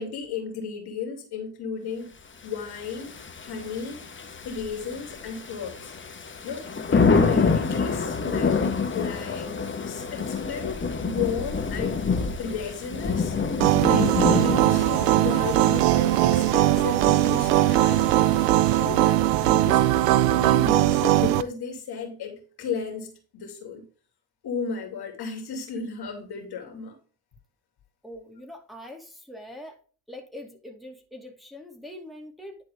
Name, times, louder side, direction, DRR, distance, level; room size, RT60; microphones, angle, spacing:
voice 1, 0.0-2.1 2.4-3.1 3.4-4.0 4.4-5.9 6.4-9.5 9.9-13.4 13.8-18.1 18.8-19.8 20.3-23.9 24.4-26.9, left 5 dB, 55° left, 2.8 m, -34 dB
Thunder / Rain, 2.6-19.2, left 4 dB, 25° left, 1.4 m, -28 dB
sound 1, 13.6-21.4, right 14 dB, 90° right, 0.6 m, -20 dB
voice 2, 28.0-29.8 30.1-32.6, left 1 dB, ahead, 2.4 m, -43 dB
10.5 x 4.3 x 3.6 m
hypercardioid pair, 65°, 47 cm